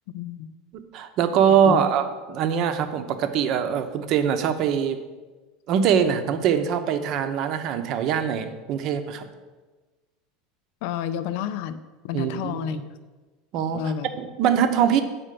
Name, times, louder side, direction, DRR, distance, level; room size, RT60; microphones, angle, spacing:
voice 1, 0.1-0.5 1.6-1.8 10.8-12.8 13.7-14.1, left 9 dB, 70° left, 12 dB, 0.4 m, -30 dB
voice 2, 0.7-5.0 5.7-9.3 12.1-12.8 13.5-15.0, right 8 dB, 50° right, 8 dB, 0.8 m, -23 dB
7.6 x 4.4 x 6.8 m, 1.3 s
supercardioid pair, 125°, 0 cm